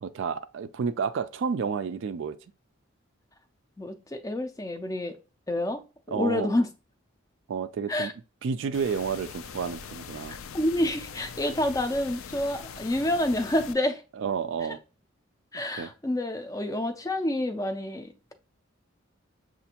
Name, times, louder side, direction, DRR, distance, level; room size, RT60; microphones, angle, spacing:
voice 1, 0.0-2.4 6.1-6.5 7.5-8.1 8.4-10.4 14.2-14.8 15.8-15.9, right 6 dB, 65° right, 0.3 m, -30 dB
voice 2, 3.8-5.2 5.5-5.8 6.1-6.7 7.9-8.1 10.3-14.0 15.5-18.3, left 1 dB, 15° left, 0.3 m, -28 dB
sound 1, 8.7-13.7, left 6 dB, 85° left, 0.4 m, -42 dB
6.7 x 2.5 x 2.8 m
head